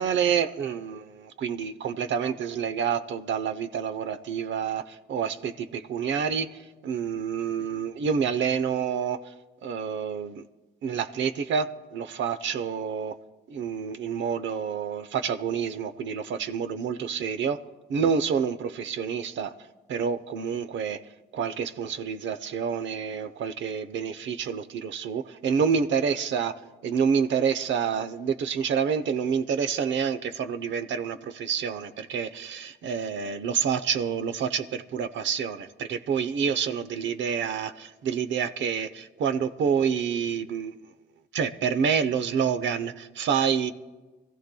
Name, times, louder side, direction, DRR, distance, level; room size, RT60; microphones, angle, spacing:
voice 1, 0.0-9.2 9.6-10.4 10.8-13.1 13.5-17.6 17.9-19.5 19.9-21.0 21.3-26.5 26.8-40.7 41.3-43.7, right 7 dB, 70° right, 11 dB, 0.8 m, -28 dB
25.0 x 15.0 x 2.3 m, 1.2 s
cardioid pair, 90°, 20 cm